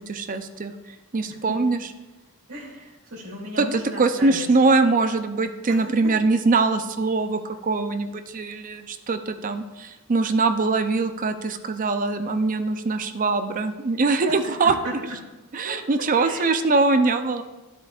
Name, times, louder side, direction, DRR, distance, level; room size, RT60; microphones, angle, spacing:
voice 1, 0.1-1.8 3.6-14.7 15.5-17.4, right 3 dB, 35° right, 9 dB, 0.5 m, -22 dB
voice 2, 1.3-1.6 2.5-4.5 5.7-6.0 14.3-15.1 15.6-15.8 16.2-16.6, right 1 dB, 75° right, -3 dB, 2.7 m, -36 dB
12.5 x 8.0 x 2.4 m, 1.1 s
head